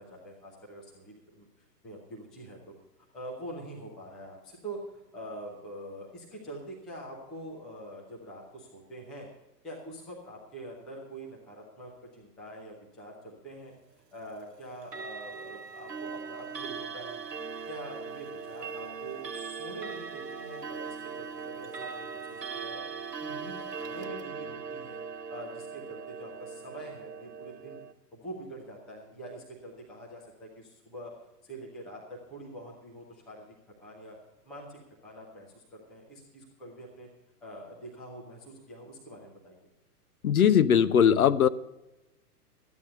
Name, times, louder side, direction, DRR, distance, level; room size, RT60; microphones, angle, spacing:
voice 1, 0.0-2.7 3.1-9.3 9.6-13.7 14.1-17.2 17.7-22.8 23.2-25.0 25.3-27.8 28.1-31.1 31.4-33.5 33.8-34.2 34.4-37.1 37.4-39.6, right 1 dB, ahead, -3 dB, 0.4 m, -45 dB
Clock, 14.8-27.9, right 5 dB, 90° right, 0.6 m, -40 dB
voice 2, 40.2-41.5, left 8 dB, 65° left, 14 dB, 0.7 m, -20 dB
13.0 x 9.5 x 5.4 m, 0.99 s
figure-of-eight pair, 110°, 48 cm